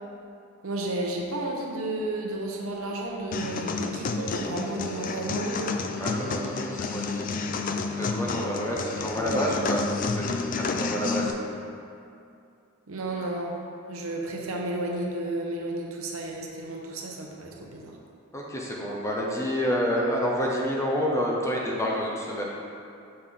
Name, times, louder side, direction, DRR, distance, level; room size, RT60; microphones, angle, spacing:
voice 1, 0.6-5.8 12.9-13.6 13.9-18.0, right 1 dB, 80° right, -1 dB, 0.8 m, -32 dB
sound 1, 3.3-11.3, left 4 dB, 40° left, 0.3 m, -30 dB
voice 2, 6.0-7.3 8.0-11.4 18.3-22.4, equal, 15° left, -3 dB, 0.7 m, -28 dB
6.6 x 5.9 x 3.6 m, 2.6 s
head